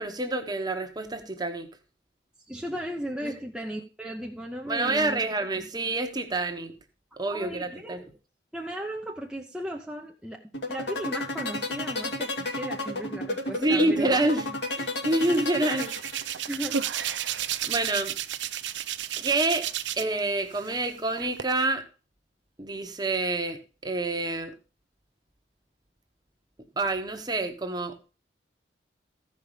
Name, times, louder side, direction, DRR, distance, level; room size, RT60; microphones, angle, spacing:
voice 1, 0.0-1.7 3.2-3.4 4.7-6.7 7.2-8.1 13.6-16.2 17.7-18.2 19.2-19.7 20.0-21.8 22.6-24.5 26.8-28.0, right 2 dB, 25° right, 6 dB, 1.1 m, -27 dB
voice 2, 2.5-5.2 5.6-5.7 7.3-8.0 8.5-14.2 16.5-16.8, equal, 5° right, -1 dB, 0.7 m, -36 dB
sound 1, 10.5-16.5, left 2 dB, 75° left, 2.5 m, -31 dB
Hands, 15.2-20.2 20.5-21.4, right 10 dB, 80° right, 0.5 m, -32 dB
14.5 x 5.5 x 5.0 m, 0.35 s
head